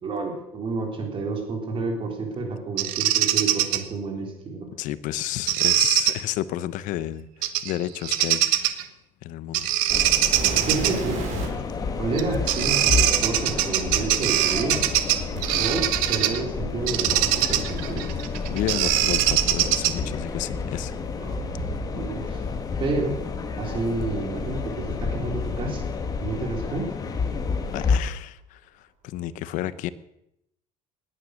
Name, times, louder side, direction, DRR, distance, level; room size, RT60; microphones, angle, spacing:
voice 1, 0.0-4.7 10.6-11.4 12.0-14.9 15.6-18.1 21.2-21.4 21.9-22.4 22.8-23.2 23.6-25.9 26.2-26.9, right 3 dB, 35° right, 3 dB, 3.6 m, -30 dB
Bird vocalization bird call bird song, 2.8-3.8 5.5-6.1 7.4-7.7 8.0-8.8 9.5-10.9 12.2-12.3 12.5-16.4 16.9-20.1, right 13 dB, 90° right, 1.3 m, -22 dB
voice 2, 4.8-8.8 9.2-9.7 18.5-20.9 27.7-29.9, left 13 dB, 65° left, 16 dB, 0.9 m, -31 dB
sound 1, 9.9-28.0, left 5 dB, 25° left, 1.6 m, -30 dB
sound 2, 10.3-11.7 12.6-12.7 15.3-17.4 18.6-22.3 22.6-23.6 24.4-24.5 25.1-25.2 25.9-27.0 27.3-27.8 29.1-29.2, right 4 dB, 60° right, 4.3 m, -36 dB
19.0 x 9.9 x 6.5 m, 0.83 s
cardioid pair, 150°, 14 cm